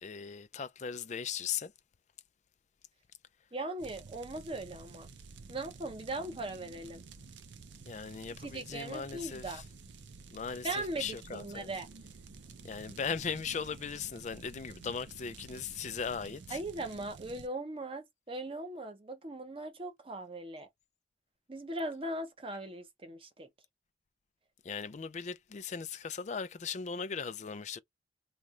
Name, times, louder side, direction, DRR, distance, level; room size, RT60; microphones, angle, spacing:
voice 1, 0.0-1.7 7.9-9.6 10.3-11.7 12.6-16.6 24.6-27.8, left 6 dB, 40° left, 0.4 m, -38 dB
voice 2, 3.5-5.1 5.5-7.0 8.4-9.6 10.6-11.9 16.5-20.7 21.5-23.5, right 2 dB, 30° right, 0.8 m, -39 dB
sound 1, 3.8-17.5, right 4 dB, 70° right, 0.5 m, -51 dB
3.1 x 2.3 x 3.7 m
head